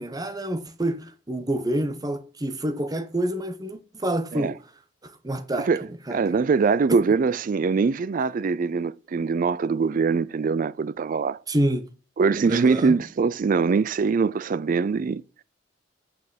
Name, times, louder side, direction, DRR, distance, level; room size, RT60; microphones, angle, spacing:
voice 1, 0.0-4.5 5.0-6.4 11.5-11.9 12.5-13.0, right 1 dB, 20° right, 0.9 m, -28 dB
voice 2, 5.5-11.4 12.2-15.2, right 5 dB, 45° right, 0.4 m, -23 dB
8.5 x 6.6 x 5.0 m
head